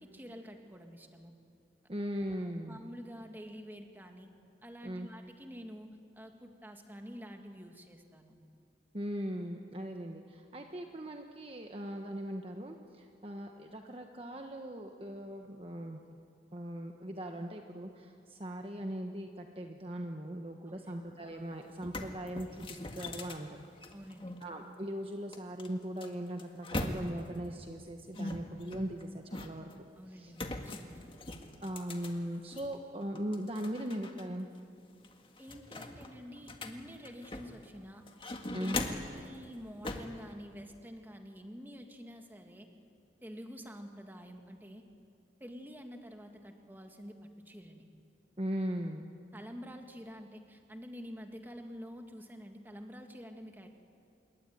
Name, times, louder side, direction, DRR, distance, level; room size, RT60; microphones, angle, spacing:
voice 1, 0.0-1.3 2.7-4.3 4.6-8.3 20.7-21.0 23.9-24.4 30.0-31.1 35.4-38.0 38.6-42.7 43.2-44.8 45.4-47.9 49.3-53.7, equal, 10° right, 4 dB, 2.1 m, -48 dB
voice 2, 1.9-2.8 4.8-5.1 8.9-16.0 16.5-23.6 24.4-29.7 30.1-30.3 31.6-34.5 38.5-38.8 48.4-49.1, equal, 30° right, 3 dB, 1.2 m, -39 dB
sound 1, 21.3-21.4 21.7-24.4 25.3-27.4 28.1-29.8 30.3-32.7 33.1-34.2 34.5-34.6 35.0-37.7 38.1-39.2 39.8-40.2, left 2 dB, 30° left, 1.8 m, -41 dB
27.0 x 22.5 x 9.4 m, 2.4 s
head